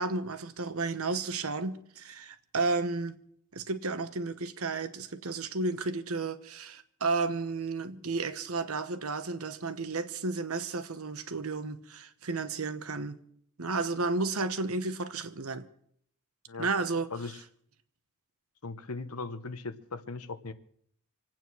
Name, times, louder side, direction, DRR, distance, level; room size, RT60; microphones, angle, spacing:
voice 1, 0.0-3.2 3.5-13.2 13.6-15.7 16.6-17.1, right 3 dB, 70° right, 1.1 m, -32 dB
voice 2, 18.6-20.5, left 3 dB, 80° left, 1.1 m, -38 dB
25.5 x 9.0 x 6.2 m
head